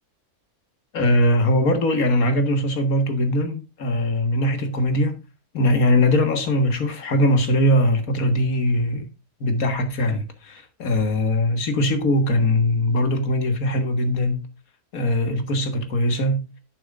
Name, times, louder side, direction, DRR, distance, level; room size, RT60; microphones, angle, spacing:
voice 1, 0.9-5.2 5.5-9.1 9.4-14.5 14.9-16.5, left 1 dB, 65° left, 2.0 m, -21 dB
10.5 x 8.8 x 2.4 m
omnidirectional pair, 1.6 m